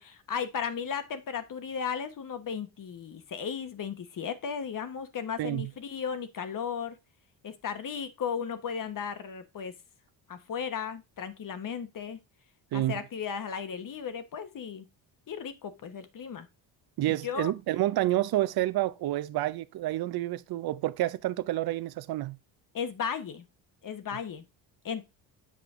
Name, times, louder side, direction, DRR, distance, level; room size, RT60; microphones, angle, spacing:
voice 1, 0.0-7.0 7.4-9.7 10.3-12.2 12.7-14.9 15.3-16.5 17.1-17.5 22.7-23.4 23.8-24.5 24.8-25.1, left 7 dB, 45° left, 1.1 m, -35 dB
voice 2, 5.4-5.7 12.7-13.0 17.0-22.4, right 15 dB, 50° right, 0.6 m, -29 dB
7.7 x 5.2 x 3.6 m
cardioid pair, 105°, 47 cm